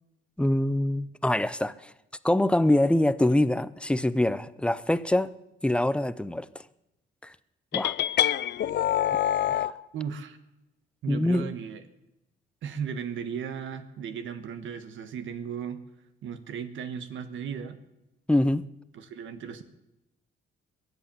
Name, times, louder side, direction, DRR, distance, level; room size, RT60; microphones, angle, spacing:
voice 1, 0.4-1.9 2.2-5.3 5.6-6.5 7.2-7.3 7.7-8.0 9.5-9.6 11.1-11.5 18.3-18.6, left 1 dB, 5° left, 0.6 m, -24 dB
sound 1, 7.7-9.7, left 11 dB, 60° left, 0.5 m, -25 dB
voice 2, 9.9-10.4 11.0-11.8 12.6-15.8 16.2-17.8 18.9-19.6, right 7 dB, 75° right, 1.4 m, -36 dB
22.0 x 8.1 x 7.0 m
cardioid pair, 90°, 20 cm